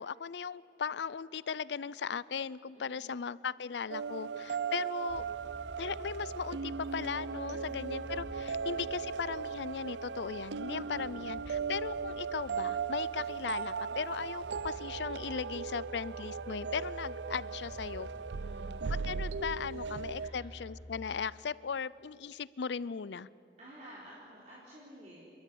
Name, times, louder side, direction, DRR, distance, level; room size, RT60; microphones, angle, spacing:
voice 1, 0.0-5.2 5.8-18.1 19.0-23.3, left 6 dB, 85° left, 20 dB, 0.5 m, -38 dB
voice 2, 2.7-3.2 7.5-7.6 8.5-8.6 10.7-11.3 18.3-18.7 19.7-20.6 23.6-25.2, right 1 dB, 40° right, -6 dB, 3.8 m, -53 dB
sound 1, 3.9-20.3, right 6 dB, 85° right, 0.5 m, -38 dB
sound 2, 5.1-20.8, left 1 dB, 15° right, 3.9 m, -50 dB
29.0 x 13.0 x 9.9 m, 2.6 s
head